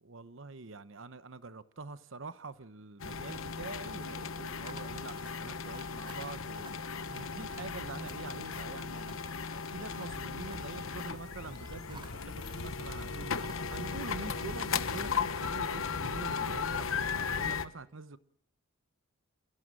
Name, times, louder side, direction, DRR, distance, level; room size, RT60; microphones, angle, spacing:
voice 1, 0.0-6.7 7.1-9.2 9.7-13.3 13.7-18.2, right 3 dB, 65° right, 0.9 m, -45 dB
sound 1, 3.0-17.6, left 5 dB, 70° left, 1.0 m, -36 dB
sound 2, 4.7-16.6, right 2 dB, 20° right, 5.3 m, -55 dB
29.0 x 16.5 x 7.6 m
head